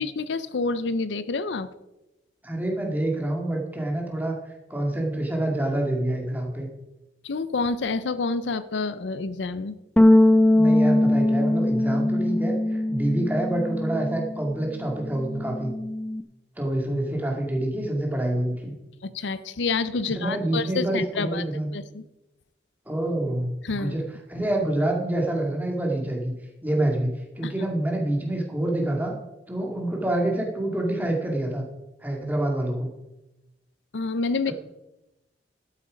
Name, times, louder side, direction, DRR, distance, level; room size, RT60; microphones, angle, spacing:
voice 1, 0.0-1.7 7.2-9.8 19.0-21.4 21.7-22.0 23.6-24.0 27.4-27.5 33.9-34.5, left 4 dB, 80° left, 15 dB, 0.6 m, -28 dB
voice 2, 2.4-6.7 10.5-15.7 16.6-18.7 20.1-21.7 22.9-24.0 24.3-26.3 26.6-27.1 27.4-29.1 29.5-31.6 32.0-32.9 34.5-34.6, right 1 dB, 10° right, 0 dB, 2.1 m, -27 dB
sound 1, 10.0-14.5 14.8-16.2, left 1 dB, 5° left, 0.4 m, -21 dB
12.5 x 8.5 x 5.2 m, 0.98 s
head